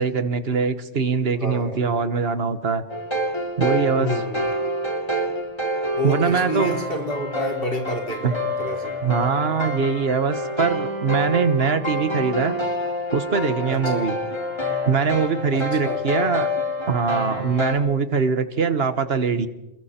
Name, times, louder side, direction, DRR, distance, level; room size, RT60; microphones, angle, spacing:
voice 1, 0.0-2.8 3.6-4.1 6.0-6.8 8.2-8.3 9.0-12.5 13.1-14.1 14.9-16.5 16.9-19.5, right 5 dB, 60° right, 12 dB, 1.5 m, -22 dB
voice 2, 1.4-1.8 4.0-4.4 5.9-9.0 13.7-14.1 15.5-16.0, left 1 dB, 55° left, 1 dB, 4.0 m, -29 dB
sound 1, 2.9-17.7, equal, 25° left, 3.3 m, -27 dB
28.0 x 21.5 x 4.4 m, 0.98 s
omnidirectional pair, 1.2 m